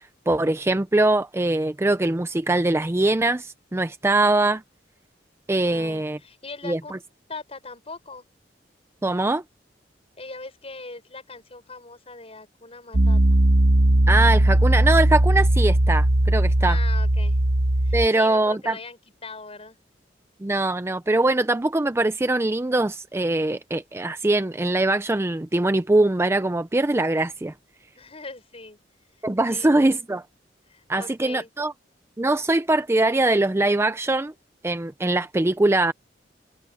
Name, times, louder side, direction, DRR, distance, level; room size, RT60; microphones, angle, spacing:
voice 1, 0.0-4.6 5.5-6.2 6.6-7.0 9.0-9.4 14.1-16.8 17.9-18.8 20.4-27.5 29.2-30.2 30.9-31.7 32.2-34.3 34.6-35.9, right 2 dB, 15° right, 0.5 m, -22 dB
voice 2, 5.6-6.9 7.3-8.2 10.2-13.4 16.6-17.4 17.8-19.8 28.0-28.8 29.5-30.0 30.7-31.5, left 3 dB, 35° left, 6.7 m, -40 dB
Piano, 12.9-18.1, right 1 dB, 60° right, 1.2 m, -18 dB
head